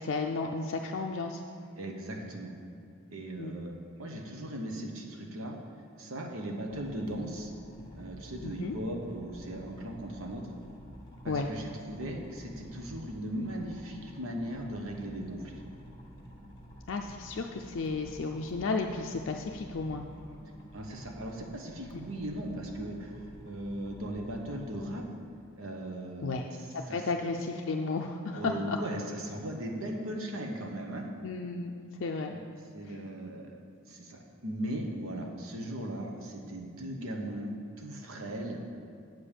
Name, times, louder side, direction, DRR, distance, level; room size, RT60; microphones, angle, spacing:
voice 1, 0.0-1.4 3.4-3.5 8.4-8.7 11.3-11.5 16.9-20.0 26.2-26.5 26.7-28.8 31.2-31.7 32.0-32.3 32.9-33.0, left 3 dB, 60° left, 2 dB, 0.4 m, -33 dB
voice 2, 1.8-2.5 3.1-5.6 6.0-7.5 7.9-10.4 11.2-15.6 20.7-25.0 25.6-26.4 26.9-27.0 28.3-31.1 32.3-32.4 32.7-33.6 33.9-38.6, right 1 dB, 70° right, 2 dB, 1.1 m, -38 dB
sound 1, 6.7-24.9, equal, 20° left, 1.3 m, -50 dB
7.9 x 5.1 x 7.3 m, 2.4 s
head